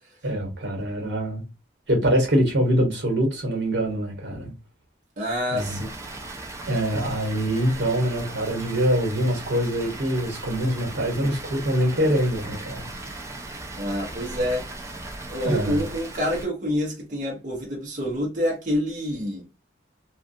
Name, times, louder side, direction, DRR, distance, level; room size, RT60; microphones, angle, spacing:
voice 1, 0.2-1.5 1.9-4.5 5.5-5.8 6.7-12.9 15.4-15.8, equal, 75° right, 1.2 m, -24 dB
voice 2, 5.2-5.9 13.8-14.6 15.3-19.4, equal, 45° right, 0.8 m, -27 dB
Water, 5.6-16.5, right 2 dB, 15° right, 0.4 m, -38 dB
2.4 x 2.3 x 2.6 m
head